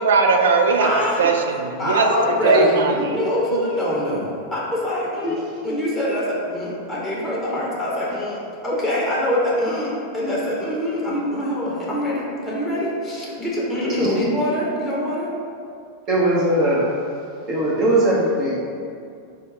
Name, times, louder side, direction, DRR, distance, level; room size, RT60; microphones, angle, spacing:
voice 1, 0.0-3.2 3.5-4.2, right 4 dB, 65° right, 3 dB, 0.3 m, -20 dB
voice 2, 0.8-1.2 1.8-8.4 8.6-15.3, left 1 dB, 10° left, -6 dB, 0.8 m, -24 dB
voice 3, 13.8-14.2 16.1-16.9 17.5-18.6, right 1 dB, 35° right, -6 dB, 0.7 m, -20 dB
4.0 x 2.2 x 3.7 m, 2.3 s
figure-of-eight pair, 90°, 0 cm